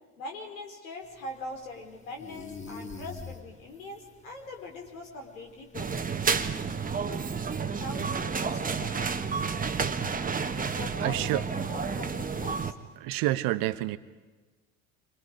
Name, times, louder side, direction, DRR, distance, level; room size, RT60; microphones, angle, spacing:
voice 1, 0.2-6.0 7.4-9.4 10.5-12.7, left 2 dB, 75° left, 1 dB, 4.3 m, -42 dB
sound 1, 1.0-6.3, left 4 dB, 15° left, 2.7 m, -46 dB
sound 2, 5.7-12.7, right 5 dB, 20° right, 1.3 m, -30 dB
voice 2, 11.0-11.4 13.0-14.0, right 16 dB, 55° right, 14 dB, 1.0 m, -28 dB
30.0 x 25.5 x 5.1 m, 1.3 s
figure-of-eight pair, 55°, 41 cm